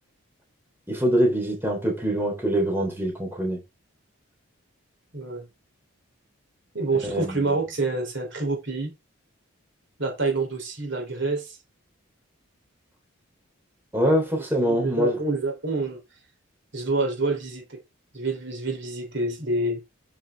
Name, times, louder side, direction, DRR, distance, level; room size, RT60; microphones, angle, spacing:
voice 1, 0.9-3.6 7.0-7.4 13.9-15.2, equal, 10° right, 3.4 m, -24 dB
voice 2, 5.1-5.4 6.7-8.9 10.0-11.6 14.6-16.0 16.7-17.8 18.1-19.8, right 3 dB, 55° right, 3.5 m, -27 dB
8.9 x 5.8 x 3.6 m
head